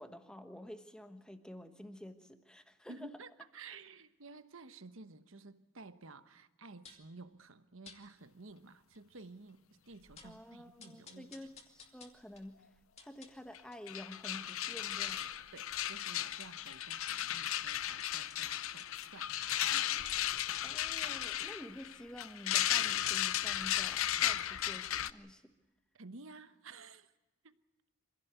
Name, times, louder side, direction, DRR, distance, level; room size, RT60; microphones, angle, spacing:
voice 1, 0.0-3.1 3.7-3.8 10.2-12.7 13.0-15.3 20.6-25.5, left 1 dB, 5° left, 7 dB, 1.3 m, -50 dB
voice 2, 2.9-11.3 15.5-20.1 25.9-27.1 27.4-27.6, right 3 dB, 65° right, 11 dB, 1.1 m, -53 dB
sound 1, 6.8-7.1 7.8-8.0 8.6-8.7 8.9-9.0 9.5-9.6 9.9-10.4 10.8-13.9 14.3-19.1 19.7-22.4 22.7-22.8, left 4 dB, 30° left, 2.3 m, -58 dB
sound 2, 13.5-13.6 13.9-25.1, left 12 dB, 70° left, 0.7 m, -35 dB
25.5 x 16.5 x 8.2 m, 1.1 s
head